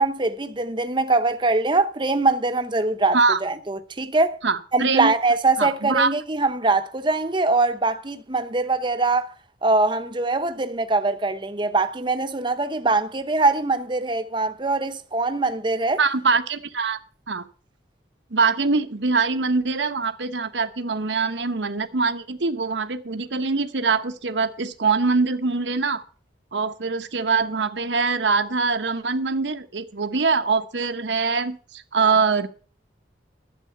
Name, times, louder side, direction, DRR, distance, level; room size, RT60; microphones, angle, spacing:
voice 1, 0.0-4.4 4.7-9.3 9.6-16.0, right 3 dB, 25° right, 0.8 m, -22 dB
voice 2, 4.4-5.1 5.6-6.1 16.0-17.0 17.3-17.4 18.3-26.0 26.5-32.5, right 4 dB, 80° right, 1.0 m, -23 dB
11.5 x 7.6 x 6.9 m
head